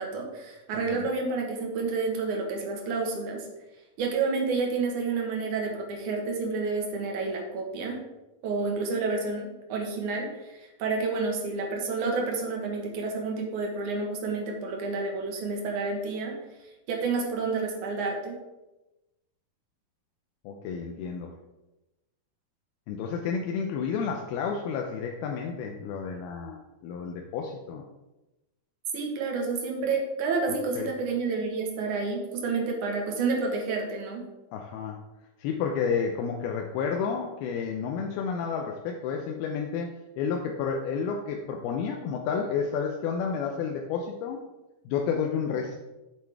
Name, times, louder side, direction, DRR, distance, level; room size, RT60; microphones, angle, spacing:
voice 1, 0.0-3.5 4.0-8.0 8.4-16.4 16.9-18.4 28.9-34.2, right 4 dB, 65° right, 1 dB, 2.5 m, -29 dB
voice 2, 20.4-21.3 22.9-27.8 30.8-30.9 34.5-35.0 35.4-44.4 44.9-45.8, left 6 dB, 90° left, 2 dB, 2.6 m, -31 dB
7.8 x 7.6 x 3.5 m, 1.0 s
omnidirectional pair, 4.3 m